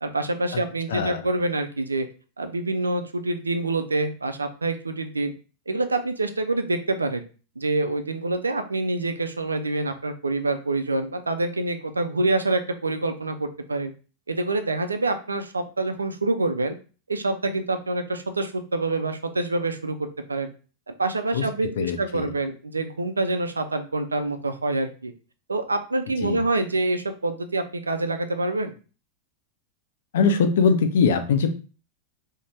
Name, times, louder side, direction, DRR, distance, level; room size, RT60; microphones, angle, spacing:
voice 1, 0.0-2.1 2.4-5.3 5.7-7.2 7.6-13.9 14.3-16.7 17.1-20.5 20.9-25.1 25.5-28.7, right 2 dB, 80° right, 8 dB, 0.3 m, -26 dB
voice 2, 0.9-1.2 21.3-21.4 21.8-22.3 26.2-26.4 30.1-31.6, left 5 dB, 60° left, 8 dB, 0.4 m, -22 dB
2.5 x 2.0 x 3.1 m, 0.36 s
figure-of-eight pair, 90°, 0 cm